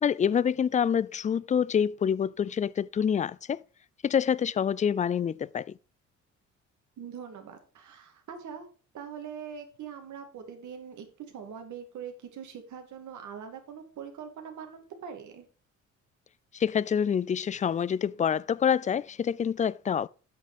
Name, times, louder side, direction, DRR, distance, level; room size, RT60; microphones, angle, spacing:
voice 1, 0.0-3.6 4.0-5.7 16.5-20.1, left 8 dB, 25° left, 0.3 m, -26 dB
voice 2, 7.0-8.7 8.9-15.4, right 7 dB, 75° right, 2.3 m, -42 dB
8.4 x 6.5 x 5.1 m
cardioid pair, 90°, 30 cm